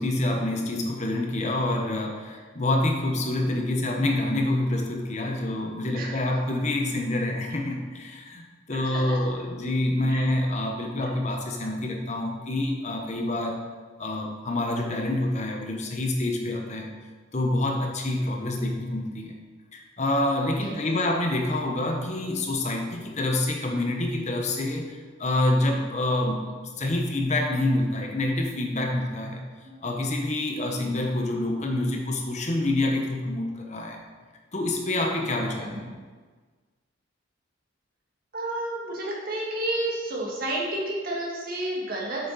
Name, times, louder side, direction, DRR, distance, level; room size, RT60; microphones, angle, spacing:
voice 1, 0.0-13.6 14.0-16.9 17.3-19.3 19.7-26.5 26.8-29.4 29.8-34.0 34.5-35.9, left 1 dB, 35° left, 2 dB, 1.0 m, -27 dB
voice 2, 5.9-6.3 7.5-7.6 8.7-9.2 10.1-10.3 18.6-18.7 20.6-20.8 26.4-26.5 29.7-29.8 30.7-30.9 35.5-35.9 38.3-42.3, right 1 dB, 45° right, -3 dB, 1.9 m, -31 dB
8.2 x 6.4 x 4.1 m, 1.4 s
head